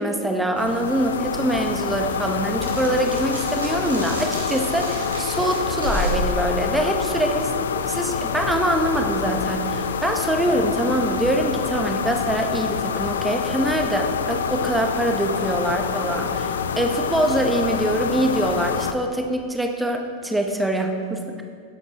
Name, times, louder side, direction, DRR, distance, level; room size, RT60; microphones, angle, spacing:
voice 1, 0.0-7.5 7.9-21.4, right 1 dB, 5° right, 3 dB, 1.0 m, -24 dB
sound 1, 0.5-18.9, left 6 dB, 65° left, 0.5 m, -27 dB
sound 2, 1.2-7.6, equal, 80° right, 1.8 m, -32 dB
17.5 x 7.9 x 2.9 m, 2.2 s
figure-of-eight pair, 90°, 0 cm